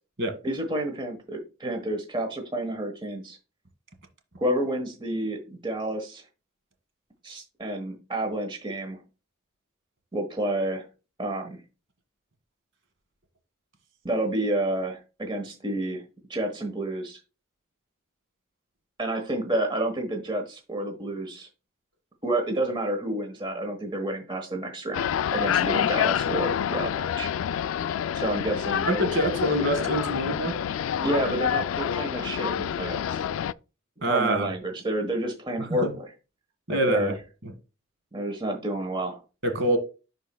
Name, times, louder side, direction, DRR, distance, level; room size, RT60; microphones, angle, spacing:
voice 1, 0.4-3.4 4.4-6.2 7.2-9.0 10.1-10.9 11.2-11.6 14.0-16.0 16.3-17.2 19.0-21.5 22.2-27.3 28.1-28.9 31.0-33.2 34.0-36.0 36.7-37.1 38.1-39.2, right 1 dB, 25° right, 1.2 m, -29 dB
sound 1, 24.9-33.5, left 9 dB, 90° left, 0.3 m, -27 dB
voice 2, 28.9-30.6 34.0-34.5 35.6-35.9 36.7-37.1 37.4-37.5 39.4-39.8, right 1 dB, 65° right, 1.7 m, -25 dB
11.0 x 4.3 x 2.2 m
head